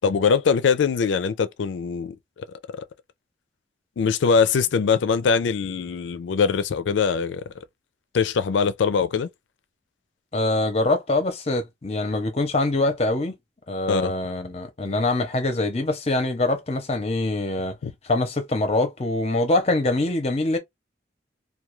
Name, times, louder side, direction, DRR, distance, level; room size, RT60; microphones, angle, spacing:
voice 1, 0.0-2.2 2.7-2.8 4.0-7.4 8.1-9.3 13.9-14.1 17.8-17.9, left 5 dB, 85° left, 0.4 m, -22 dB
voice 2, 10.3-13.3 13.7-17.7 18.0-20.6, left 2 dB, 35° left, 0.6 m, -24 dB
2.3 x 2.2 x 3.0 m
head